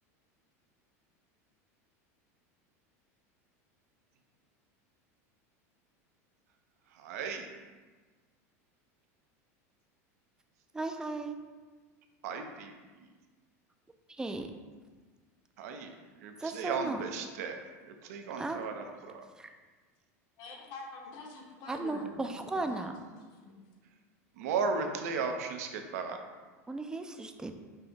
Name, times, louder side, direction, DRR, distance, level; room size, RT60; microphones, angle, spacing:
voice 1, 6.9-7.5 12.2-12.7 13.0-13.1 15.6-19.2 24.4-26.2, right 5 dB, 75° right, 5 dB, 0.5 m, -36 dB
voice 2, 10.7-11.4 14.1-14.5 16.4-17.0 18.4-18.7 19.4-19.5 21.7-22.9 26.7-27.6, right 2 dB, 10° right, 6 dB, 0.3 m, -36 dB
voice 3, 20.4-23.1 23.4-23.6, left 3 dB, 55° left, 1 dB, 0.9 m, -46 dB
5.4 x 2.6 x 3.4 m, 1.4 s
hypercardioid pair, 105°, 8 cm